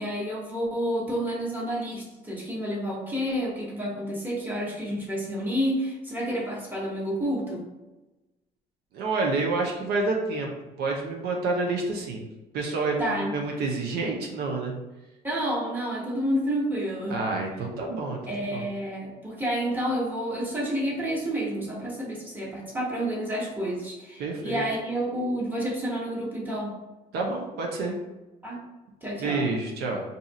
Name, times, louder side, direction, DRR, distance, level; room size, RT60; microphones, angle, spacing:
voice 1, 0.0-7.6 13.0-13.3 15.2-17.2 18.3-26.7 28.4-28.6 29.0-29.5, equal, 10° right, -4 dB, 1.1 m, -29 dB
voice 2, 8.9-10.5 10.8-12.2 12.5-14.7 17.1-18.6 24.2-24.6 27.1-27.9 29.2-30.0, right 3 dB, 75° right, 0 dB, 0.6 m, -28 dB
2.7 x 2.4 x 4.1 m, 1.1 s
cardioid pair, 110°, 17 cm